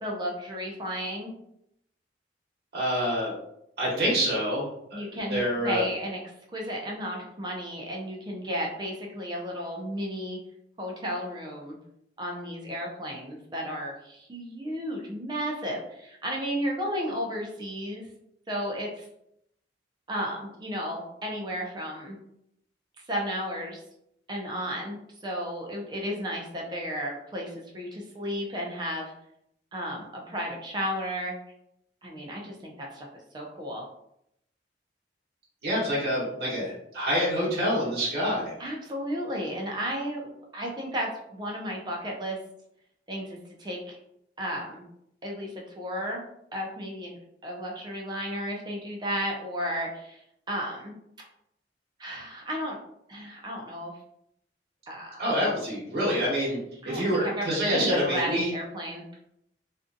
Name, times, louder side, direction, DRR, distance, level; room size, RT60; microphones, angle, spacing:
voice 1, 0.0-1.3 4.9-6.2 6.5-10.4 10.8-11.8 12.2-18.1 18.5-19.1 20.1-22.2 23.1-23.8 24.3-29.1 29.7-31.4 32.0-33.1 33.3-33.9 38.6-42.4 43.1-44.0 44.4-44.8 45.2-46.2 46.5-50.2 50.5-50.9 52.0-52.8 53.1-53.9 54.9-55.3 56.8-59.0, equal, 25° right, -1 dB, 0.5 m, -33 dB
voice 2, 2.7-3.3 3.8-5.0 5.3-5.8 35.6-38.5 55.2-56.6 56.9-58.5, equal, 60° right, -6 dB, 1.0 m, -26 dB
2.5 x 2.3 x 2.5 m, 0.77 s
head